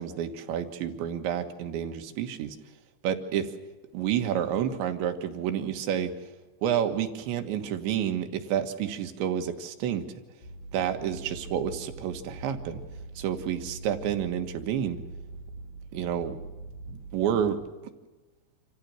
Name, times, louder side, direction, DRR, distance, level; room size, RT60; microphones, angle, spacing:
voice 1, 0.0-2.6 3.0-3.5 3.9-6.1 6.6-10.1 10.7-12.8 13.2-15.0 15.9-16.4 16.9-17.6, right 9 dB, 80° right, 7 dB, 3.7 m, -29 dB
sound 1, 10.4-17.5, right 2 dB, 60° left, 4.5 m, -43 dB
27.5 x 15.0 x 7.8 m, 1.2 s
omnidirectional pair, 5.3 m